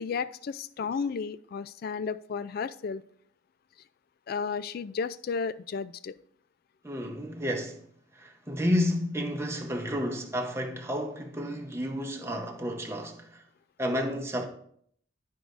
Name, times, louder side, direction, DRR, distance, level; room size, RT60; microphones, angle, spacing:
voice 1, 0.0-3.0 4.3-6.1, left 5 dB, 50° left, 0.3 m, -33 dB
voice 2, 6.8-7.8 8.2-13.4 13.8-14.5, equal, 15° right, 0.8 m, -31 dB
12.0 x 4.7 x 2.5 m
head